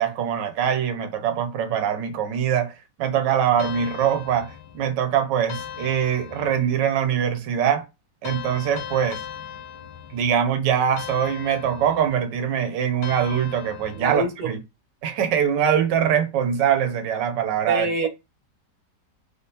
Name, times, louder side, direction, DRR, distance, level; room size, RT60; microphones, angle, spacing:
voice 1, 0.0-7.8 8.2-9.2 10.1-14.6 15.0-18.1, right 8 dB, 85° right, 1.3 m, -23 dB
sound 1, 3.6-4.9 5.5-6.8 8.2-10.4 11.0-12.3 13.0-14.3, left 9 dB, 65° left, 1.2 m, -38 dB
voice 2, 13.9-14.5 17.7-18.1, right 2 dB, 65° right, 1.3 m, -26 dB
4.2 x 3.5 x 2.7 m
omnidirectional pair, 1.9 m